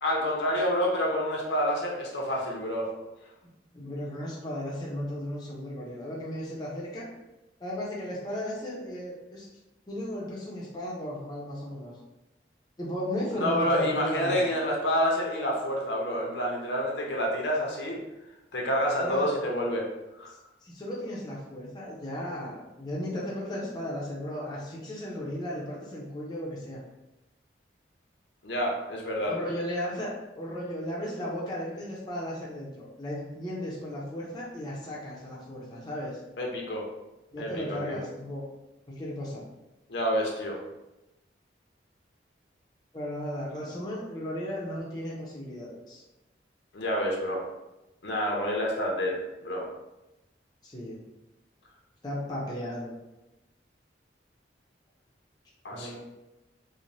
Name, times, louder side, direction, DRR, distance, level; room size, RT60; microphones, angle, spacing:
voice 1, 0.0-2.9 13.3-18.0 18.5-19.9 20.2-20.3 28.4-29.3 36.4-36.8 37.4-38.0 39.9-40.6 46.7-47.4 48.0-49.7 55.6-55.9, equal, 75° left, -1 dB, 0.6 m, -28 dB
voice 2, 3.4-7.1 7.6-9.5 9.9-11.9 12.8-14.5 19.0-19.3 20.6-26.8 29.3-36.2 37.3-38.5 38.9-39.4 42.9-46.0 50.6-51.0 52.0-53.0 55.7-55.9, left 1 dB, 20° left, -5 dB, 0.5 m, -35 dB
3.0 x 2.1 x 2.6 m, 0.97 s
head